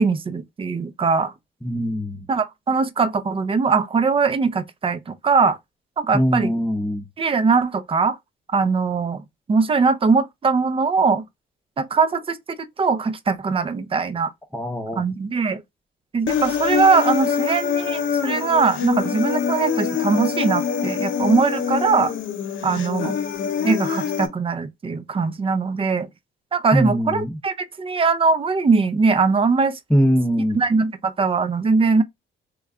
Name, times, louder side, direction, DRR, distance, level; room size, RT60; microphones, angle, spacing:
voice 1, 0.0-1.3 2.3-5.6 6.0-6.5 7.2-8.2 8.5-9.2 9.5-11.2 11.8-14.3 15.0-15.6 16.1-22.1 22.6-23.1 23.6-26.1 26.5-29.8 30.5-32.0, right 4 dB, 25° right, 0.5 m, -21 dB
voice 2, 1.6-2.2 6.1-7.0 14.5-15.0 26.7-27.4 29.9-30.6, equal, 5° left, 0.8 m, -21 dB
Human voice, 16.3-24.3, left 7 dB, 75° left, 0.9 m, -24 dB
3.2 x 2.3 x 3.6 m
cardioid pair, 90°, 20 cm